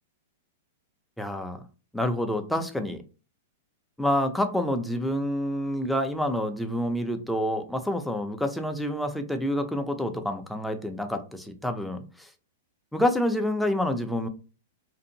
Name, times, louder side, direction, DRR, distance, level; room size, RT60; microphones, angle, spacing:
voice 1, 1.2-1.6 1.9-3.0 4.0-12.3 12.9-14.3, left 1 dB, 5° left, 6 dB, 0.4 m, -28 dB
2.6 x 2.4 x 2.7 m, 0.34 s
hypercardioid pair, 115°, 0 cm